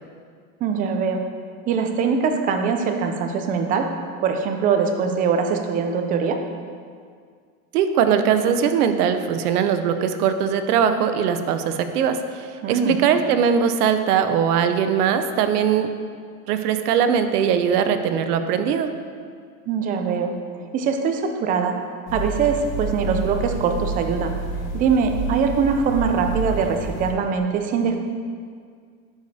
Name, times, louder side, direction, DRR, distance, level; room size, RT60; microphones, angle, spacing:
voice 1, 0.6-1.2 1.7-3.9 4.2-6.4 12.6-13.0 19.7-20.3 20.7-21.8 22.1-24.4 24.7-28.0, right 6 dB, 20° right, 5 dB, 0.3 m, -22 dB
voice 2, 7.7-15.9 16.5-18.9, right 7 dB, 85° right, 9 dB, 0.7 m, -20 dB
sound 1, 22.1-27.1, right 2 dB, 70° left, 1.5 m, -29 dB
11.0 x 4.9 x 2.7 m, 2.1 s
supercardioid pair, 120°, 45 cm